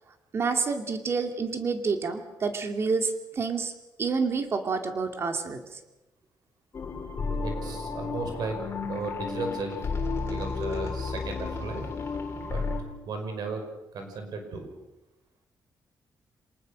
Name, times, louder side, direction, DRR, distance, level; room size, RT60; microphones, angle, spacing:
voice 1, 0.3-3.7 4.0-5.6, right 4 dB, 35° right, 6 dB, 2.4 m, -28 dB
sound 1, 6.7-12.8, left 4 dB, 35° left, 3.5 m, -32 dB
voice 2, 7.4-8.6 8.9-9.8 10.2-11.9 12.4-12.7 13.0-13.6 13.9-14.7, right 3 dB, 65° right, 5 dB, 5.3 m, -35 dB
27.5 x 19.5 x 6.5 m, 1.0 s
wide cardioid pair, 160°, 7 cm